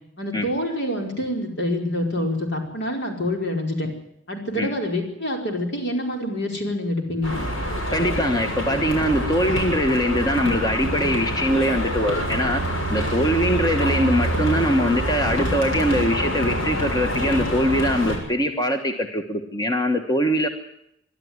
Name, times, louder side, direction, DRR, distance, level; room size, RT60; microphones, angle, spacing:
voice 1, 0.2-3.9 4.3-7.4, left 1 dB, 60° left, 2 dB, 5.0 m, -26 dB
sound 1, 7.2-18.2, equal, 90° left, 6.6 m, -26 dB
voice 2, 7.9-12.6 12.9-20.5, equal, 20° left, 5 dB, 1.3 m, -22 dB
23.5 x 12.5 x 9.6 m, 0.78 s
head